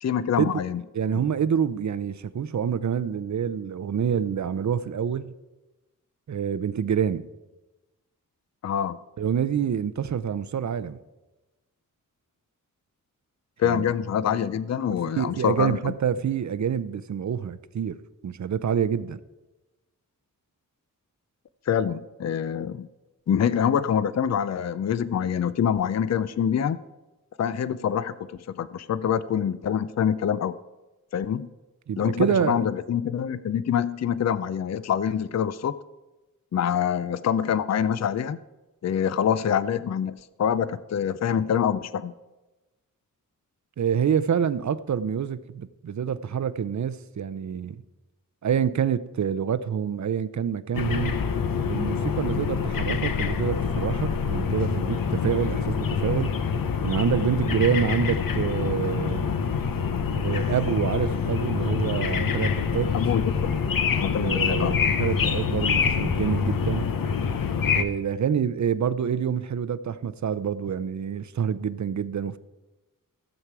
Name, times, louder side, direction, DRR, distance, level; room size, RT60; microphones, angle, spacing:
voice 1, 0.0-0.8 8.6-9.0 13.6-15.9 21.7-22.9 23.3-26.8 27.4-30.6 31.1-31.5 32.0-35.7 36.5-38.4 38.8-42.1 62.9-63.6 64.0-64.8, left 8 dB, 50° left, 15 dB, 0.4 m, -25 dB
voice 2, 0.9-5.3 6.3-7.3 9.2-11.0 13.6-13.8 14.2-14.5 15.2-18.0 18.2-19.2 31.9-32.7 43.8-47.8 48.4-51.2 51.7-56.4 56.8-59.3 60.2-62.9 64.2-66.9 67.7-72.4, right 8 dB, 55° right, 14 dB, 0.5 m, -27 dB
sound 1, 50.7-67.8, left 6 dB, 80° left, 0.8 m, -26 dB
15.0 x 7.3 x 4.7 m, 1.1 s
wide cardioid pair, 115°, 34 cm